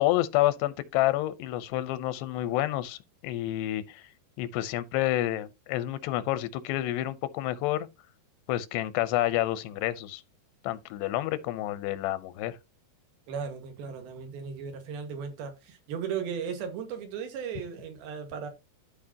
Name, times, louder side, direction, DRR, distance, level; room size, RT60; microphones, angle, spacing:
voice 1, 0.0-4.0 4.4-7.9 8.5-10.2 10.6-12.6, left 15 dB, 90° left, 2.9 m, -29 dB
voice 2, 13.3-18.5, right 6 dB, 70° right, 3.5 m, -36 dB
13.0 x 5.0 x 2.9 m
omnidirectional pair, 4.7 m